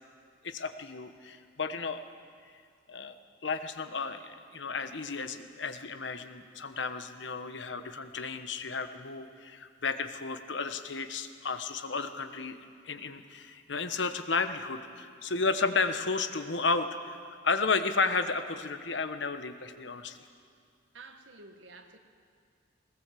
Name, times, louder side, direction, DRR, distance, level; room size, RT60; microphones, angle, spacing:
voice 1, 0.4-2.0 2.9-3.1 3.4-12.6 12.8-20.2, left 4 dB, 70° left, 9 dB, 1.2 m, -33 dB
voice 2, 20.9-22.0, right 3 dB, 80° right, 6 dB, 1.7 m, -50 dB
20.0 x 19.0 x 7.6 m, 2.2 s
head